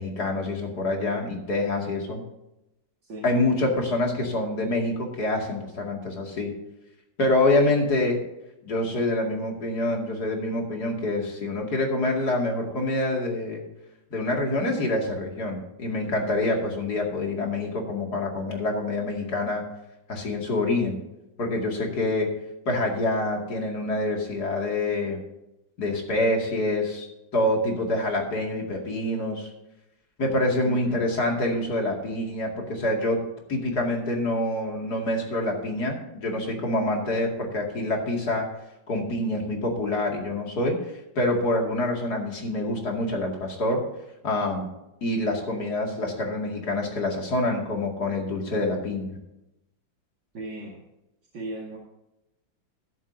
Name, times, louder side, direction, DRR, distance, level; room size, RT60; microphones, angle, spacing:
voice 1, 0.0-2.2 3.2-6.5 7.2-8.2 8.6-13.6 14.1-19.6 20.1-21.0 21.4-22.3 22.7-25.2 25.8-27.1 27.3-29.5 30.2-33.2 33.5-38.5 38.9-40.8 41.2-43.8 44.2-44.7 45.0-49.2, left 2 dB, 55° left, 0 dB, 2.8 m, -26 dB
voice 2, 30.6-31.0 50.3-50.8 51.3-51.8, right 2 dB, 70° right, -3 dB, 2.8 m, -36 dB
13.5 x 12.0 x 2.7 m, 0.90 s
omnidirectional pair, 2.1 m